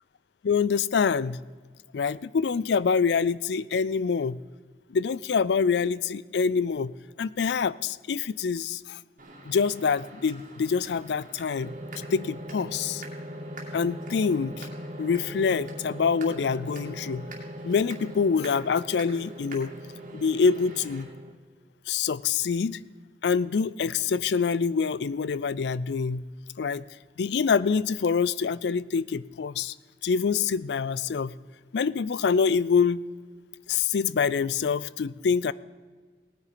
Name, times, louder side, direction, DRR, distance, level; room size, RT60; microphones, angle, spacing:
voice 1, 0.4-1.4 1.9-4.4 4.9-6.9 7.2-9.0 9.5-13.0 13.7-14.7 15.0-17.3 17.6-19.7 20.1-21.1 21.9-22.8 23.2-26.3 26.6-26.8 27.2-29.7 30.0-31.3 31.7-33.0 33.7-35.5, left 5 dB, 75° left, 19 dB, 0.4 m, -26 dB
sound 1, 9.2-21.0, right 2 dB, 45° right, 2.5 m, -47 dB
sound 2, 11.6-21.3, equal, 30° right, 0.9 m, -40 dB
18.0 x 9.6 x 5.0 m, 1.4 s
head